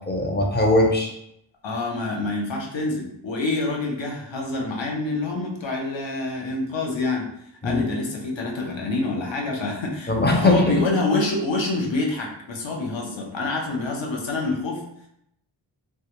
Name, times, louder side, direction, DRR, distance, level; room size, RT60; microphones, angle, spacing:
voice 1, 0.1-1.1 7.6-7.9 10.1-10.9, left 2 dB, 25° left, 0 dB, 0.4 m, -20 dB
voice 2, 1.6-7.3 7.6-14.8, left 2 dB, 65° left, 0 dB, 0.7 m, -27 dB
2.3 x 2.0 x 2.8 m, 0.75 s
wide cardioid pair, 50°, 48 cm